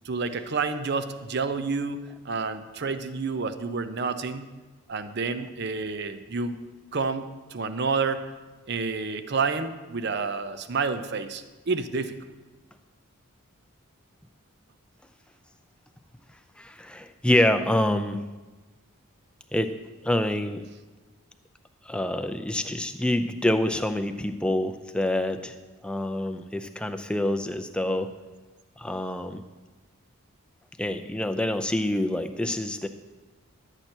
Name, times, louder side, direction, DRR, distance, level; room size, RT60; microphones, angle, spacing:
voice 1, 0.0-4.5 4.9-6.6 6.9-8.3 8.7-12.3, right 4 dB, 50° right, 10 dB, 0.6 m, -29 dB
voice 2, 16.6-18.2 19.5-19.7 20.0-20.6 21.9-25.6 25.8-28.1 28.8-29.4 30.8-32.9, left 1 dB, 5° left, 7 dB, 0.4 m, -26 dB
12.0 x 8.0 x 4.4 m, 1.2 s
head